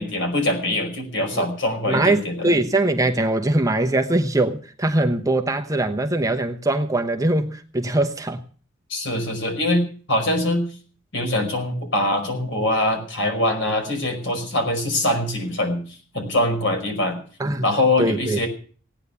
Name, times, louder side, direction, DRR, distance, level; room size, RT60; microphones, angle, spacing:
voice 1, 0.0-2.5 8.9-10.6 11.1-15.8 16.1-17.2 17.6-18.5, left 1 dB, 65° left, 5.2 m, -23 dB
voice 2, 1.9-8.4 17.4-17.6 18.0-18.4, right 2 dB, 15° right, 0.9 m, -22 dB
17.5 x 9.7 x 6.9 m
head